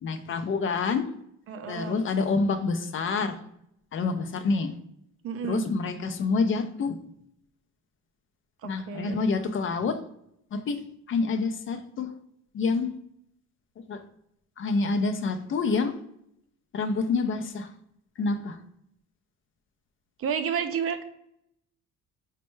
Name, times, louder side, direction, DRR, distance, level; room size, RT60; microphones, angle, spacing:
voice 1, 0.0-1.1 1.7-3.4 3.9-4.7 5.4-7.0 8.6-10.0 10.5-10.8 11.1-12.1 12.5-12.9 13.9-14.0 14.6-15.9 16.7-17.7 18.2-18.6, left 4 dB, 40° left, 7 dB, 0.4 m, -27 dB
voice 2, 1.5-2.1 5.2-5.7 8.6-9.2 20.2-21.0, right 7 dB, 45° right, 8 dB, 0.4 m, -31 dB
4.2 x 2.2 x 3.1 m, 0.75 s
cardioid pair, 95°, 31 cm